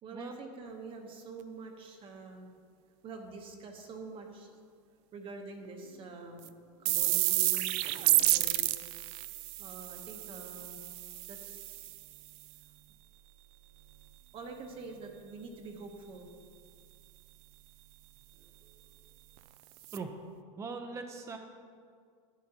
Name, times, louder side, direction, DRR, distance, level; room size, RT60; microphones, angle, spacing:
voice 1, 0.0-2.5 3.0-4.6 5.1-8.7 9.6-10.8 11.3-12.0 14.3-16.3 18.3-18.9, right 3 dB, 35° right, 3 dB, 1.0 m, -46 dB
sound 1, 6.4-6.5 6.9-12.4 19.4-19.5 19.8-20.0, right 17 dB, 55° right, 0.4 m, -31 dB
voice 2, 20.6-21.4, right 4 dB, 15° right, 4 dB, 0.7 m, -40 dB
11.0 x 9.2 x 2.9 m, 2.1 s
supercardioid pair, 135°, 17 cm